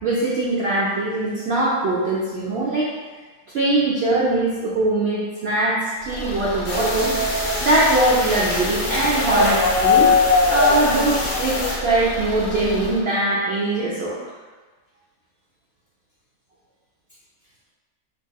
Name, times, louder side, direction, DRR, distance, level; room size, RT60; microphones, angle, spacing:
voice 1, 0.0-2.9 3.5-7.2 7.6-10.1 10.5-14.2, right 2 dB, 85° right, -6 dB, 0.5 m, -21 dB
Car / Engine, 6.0-13.0, left 1 dB, 85° left, 1.2 m, -32 dB
sound 1, 6.7-11.7, left 3 dB, 60° left, 0.5 m, -21 dB
3.9 x 2.5 x 2.3 m, 1.3 s
omnidirectional pair, 1.7 m